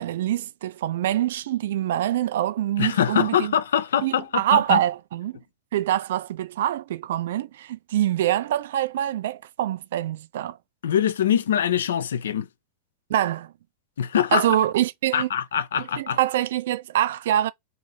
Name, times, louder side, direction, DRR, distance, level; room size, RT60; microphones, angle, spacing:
voice 1, 0.0-3.5 4.0-5.4 5.7-10.6 13.1-13.5 14.3-15.3 16.0-17.5, right 12 dB, 55° right, 0.4 m, -25 dB
voice 2, 2.8-4.8 10.8-12.5 14.0-14.4 15.1-16.2, left 9 dB, 65° left, 0.4 m, -23 dB
3.1 x 2.6 x 4.0 m
figure-of-eight pair, 90°, 0 cm